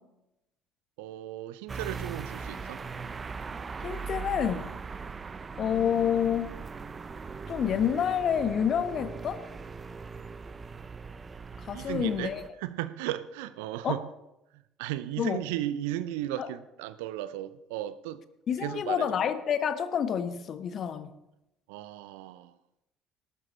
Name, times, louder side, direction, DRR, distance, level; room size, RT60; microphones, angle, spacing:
voice 1, 1.0-2.8 11.7-12.3 12.6-14.1 14.8-18.2 18.6-19.1 21.7-22.6, right 13 dB, 65° right, 0.6 m, -35 dB
sound 1, 1.7-12.5, right 5 dB, 30° right, 0.9 m, -40 dB
voice 2, 3.8-4.7 5.6-6.5 7.5-9.4 11.6-12.4 13.8-13.9 15.2-15.4 16.4-16.5 18.5-21.1, left 8 dB, 45° left, 1.2 m, -28 dB
18.5 x 12.5 x 4.3 m
figure-of-eight pair, 55°, 0 cm